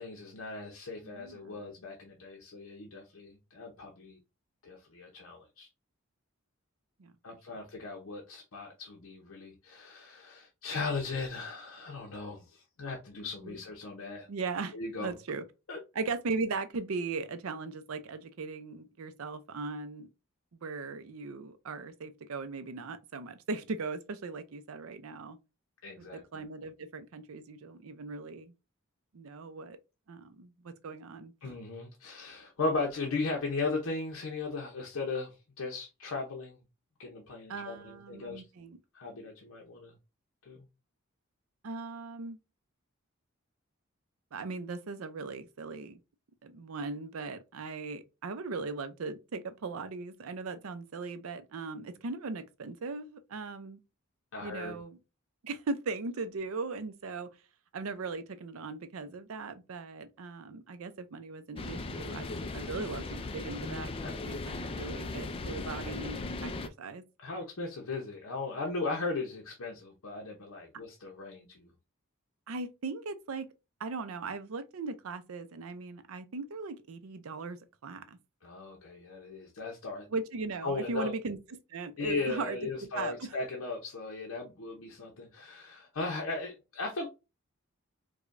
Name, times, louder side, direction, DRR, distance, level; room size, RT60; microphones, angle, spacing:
voice 1, 0.0-4.2 4.6-5.7 7.2-14.3 14.7-15.1 15.7-15.8 25.8-26.4 31.4-36.6 37.0-38.4 38.9-39.9 40.5-40.7 54.3-54.7 64.0-64.1 67.2-71.7 78.4-80.1 80.6-81.1 82.0-87.1, left 3 dB, 80° left, 0.7 m, -37 dB
voice 2, 1.0-1.7 7.0-7.1 13.4-13.5 14.3-15.4 16.0-20.1 20.5-25.4 26.0-28.5 29.1-29.8 30.1-31.3 37.5-38.8 41.6-42.4 44.3-46.0 46.4-53.8 54.4-55.0 55.4-57.3 57.7-63.9 64.2-67.0 72.5-73.5 73.8-78.2 80.1-83.3, right 4 dB, 75° right, 0.5 m, -38 dB
sound 1, 61.6-66.7, left 3 dB, 25° left, 0.3 m, -38 dB
4.8 x 2.2 x 2.5 m
head